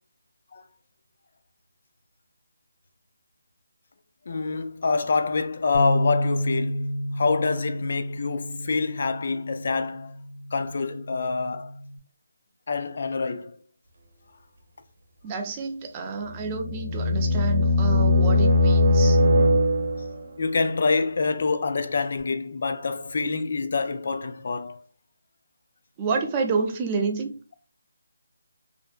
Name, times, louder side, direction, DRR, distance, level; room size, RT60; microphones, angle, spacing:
voice 1, 4.3-6.9 7.2-10.1 10.5-11.7 12.7-13.6 20.4-24.8, left 4 dB, 50° left, 0.3 m, -26 dB
Bass guitar, 5.7-12.0, equal, 70° left, 1.3 m, -31 dB
voice 2, 15.2-19.2 26.0-27.3, right 4 dB, 20° right, 0.4 m, -29 dB
sound 1, 16.3-20.2, left 1 dB, 65° right, 0.7 m, -20 dB
2.5 x 2.1 x 2.4 m
figure-of-eight pair, 160°, 0 cm